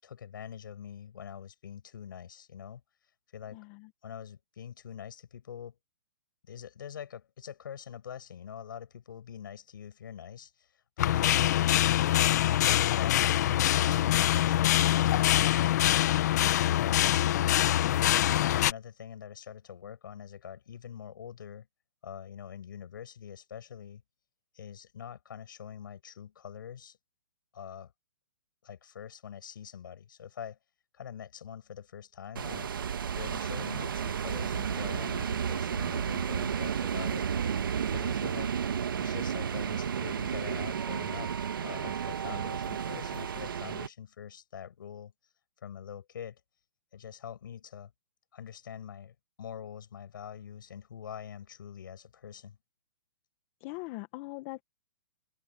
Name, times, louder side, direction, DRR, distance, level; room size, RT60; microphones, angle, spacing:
voice 1, 0.0-2.8 3.3-3.6 4.0-5.7 6.4-12.2 12.5-16.0 16.6-17.5 18.2-21.7 22.0-24.0 24.5-27.0 27.5-27.9 28.6-30.6 30.9-32.7 33.2-37.3 37.9-38.5 39.0-45.1 45.6-46.4 46.9-47.9 48.3-52.6, left 8 dB, 75° left, 7.8 m, -44 dB
voice 2, 3.5-3.9 53.6-54.6, left 23 dB, 35° left, 1.9 m, -41 dB
sound 1, 11.0-18.7, left 13 dB, 55° left, 1.4 m, -24 dB
sound 2, 32.3-43.9, right 7 dB, 80° right, 2.0 m, -32 dB
hypercardioid pair, 145°, 11 cm